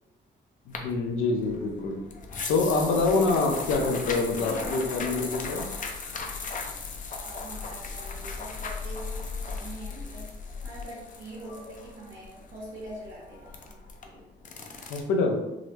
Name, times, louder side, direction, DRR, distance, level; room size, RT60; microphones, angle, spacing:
voice 1, 0.7-2.0 2.5-5.6 14.9-15.4, left 3 dB, 85° left, 2 dB, 0.6 m, -26 dB
sound 1, 0.7-15.0, left 4 dB, 40° left, 0.5 m, -37 dB
voice 2, 2.8-3.7 4.3-5.4 7.2-10.3 10.6-14.2, right 1 dB, 85° right, -7 dB, 1.0 m, -43 dB
3.6 x 2.1 x 3.1 m, 0.96 s
cardioid pair, 90°, 20 cm